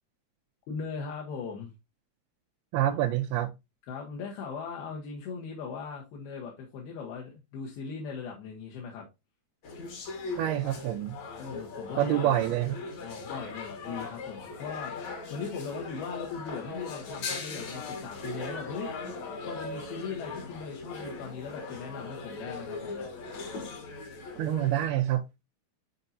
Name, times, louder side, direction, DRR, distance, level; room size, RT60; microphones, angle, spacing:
voice 1, 0.7-1.7 3.8-9.1 11.4-12.4 13.0-18.9 19.4-23.1, left 5 dB, 75° left, 3.2 m, -39 dB
voice 2, 2.7-3.5 10.4-11.2 12.0-12.8 24.4-25.2, right 13 dB, 80° right, 2.6 m, -27 dB
sound 1, 9.6-24.9, left 3 dB, 55° left, 2.3 m, -39 dB
10.0 x 4.4 x 2.7 m
omnidirectional pair, 4.6 m